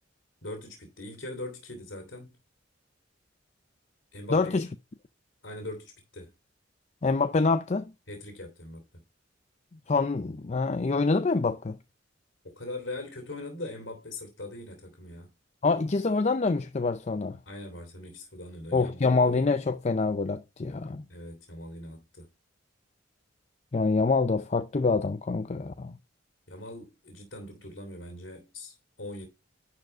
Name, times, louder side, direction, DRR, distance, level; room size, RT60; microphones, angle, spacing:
voice 1, 0.4-2.4 4.1-4.6 5.4-6.3 8.1-9.0 12.4-15.3 17.5-19.2 21.1-22.3 26.5-29.3, left 2 dB, 65° left, 2.8 m, -41 dB
voice 2, 4.3-4.7 7.0-7.9 9.9-11.8 15.6-17.4 18.7-21.0 23.7-26.0, left 3 dB, 35° left, 0.5 m, -26 dB
11.0 x 4.8 x 4.5 m
head